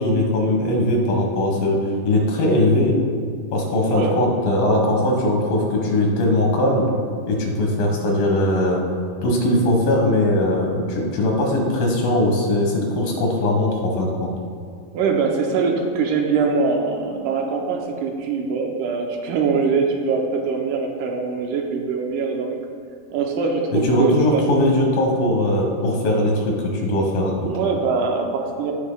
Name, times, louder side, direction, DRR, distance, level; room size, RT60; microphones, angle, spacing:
voice 1, 0.0-3.0 3.5-6.9 7.3-8.8 9.2-14.3 23.7-27.5, left 1 dB, 85° left, 0 dB, 3.2 m, -20 dB
voice 2, 14.9-22.6 23.1-24.5 27.5-28.7, right 4 dB, 80° right, 2 dB, 2.2 m, -23 dB
17.0 x 7.4 x 2.3 m, 2.1 s
omnidirectional pair, 3.9 m